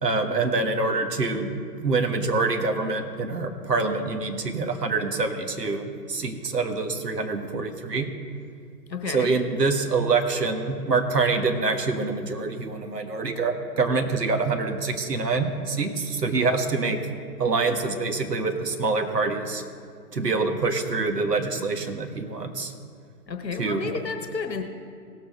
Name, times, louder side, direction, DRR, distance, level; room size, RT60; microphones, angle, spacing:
voice 1, 0.0-1.5 1.8-8.1 9.1-17.0 17.4-19.6 20.1-22.7 23.6-23.9, right 3 dB, 70° right, 5 dB, 1.6 m, -25 dB
voice 2, 8.9-9.3 23.3-24.6, left 5 dB, 85° left, 6 dB, 1.3 m, -31 dB
18.0 x 7.5 x 3.8 m, 2.3 s
figure-of-eight pair, 150°, 49 cm